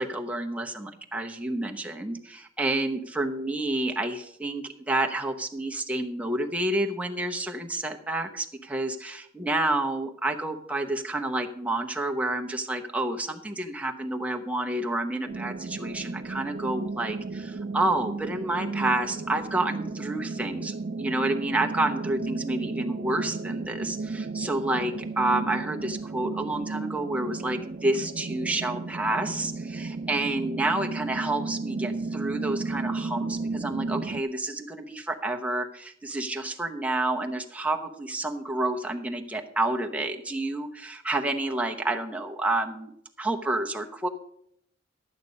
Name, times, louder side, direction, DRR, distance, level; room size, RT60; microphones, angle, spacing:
voice 1, 0.0-42.9 43.2-44.1, right 2 dB, 5° right, 2 dB, 0.9 m, -29 dB
sound 1, 15.3-34.2, right 3 dB, 45° right, 0.4 m, -34 dB
11.0 x 8.8 x 5.2 m, 0.70 s
head